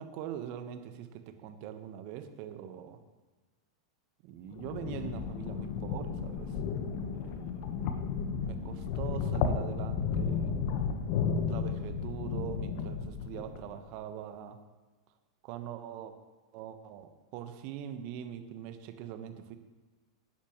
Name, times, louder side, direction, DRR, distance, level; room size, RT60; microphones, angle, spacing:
voice 1, 0.0-3.0 4.2-6.6 7.1-8.0 8.4-10.5 11.5-14.6 15.4-16.1 16.5-19.6, right 9 dB, 50° right, 8 dB, 1.2 m, -42 dB
sound 1, 4.5-13.7, left 6 dB, 50° left, 1.2 m, -33 dB
19.0 x 10.0 x 3.2 m, 1.3 s
hypercardioid pair, 95°, 2 cm